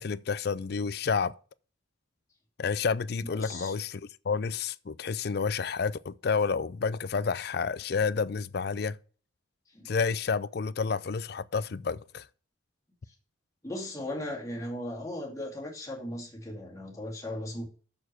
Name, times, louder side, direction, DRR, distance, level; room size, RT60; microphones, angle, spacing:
voice 1, 0.0-1.3 2.6-4.0 4.3-9.0 9.9-12.2, left 5 dB, 50° left, 0.4 m, -30 dB
voice 2, 3.2-3.7 9.7-9.9 13.6-17.7, left 1 dB, 15° left, 2.5 m, -37 dB
7.0 x 6.5 x 7.6 m
head